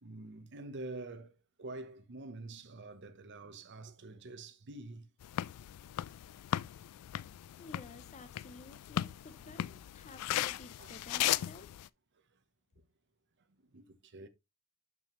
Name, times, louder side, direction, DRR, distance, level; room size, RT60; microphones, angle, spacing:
voice 1, 0.0-5.1 10.1-10.2 10.8-11.0 11.4-11.6 13.6-14.3, right 2 dB, 55° right, 0.9 m, -47 dB
sound 1, 5.2-11.9, left 12 dB, 85° left, 0.3 m, -37 dB
voice 2, 7.6-11.7, left 3 dB, 30° left, 0.6 m, -52 dB
6.9 x 6.0 x 3.0 m
head